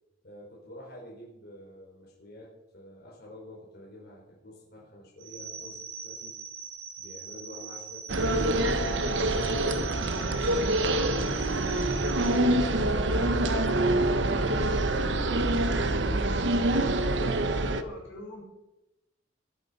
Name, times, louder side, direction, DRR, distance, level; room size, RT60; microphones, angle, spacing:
voice 1, 0.2-6.4 7.0-9.2 9.6-12.1 12.5-15.8 16.5-17.3, equal, 55° left, -4 dB, 4.2 m, -48 dB
sound 1, 5.2-12.3, right 5 dB, 90° right, 6.3 m, -42 dB
sound 2, 8.1-17.8, right 1 dB, 70° right, 1.0 m, -26 dB
voice 2, 16.7-18.4, left 1 dB, 85° left, -1 dB, 6.7 m, -43 dB
21.0 x 8.2 x 5.5 m, 0.96 s
head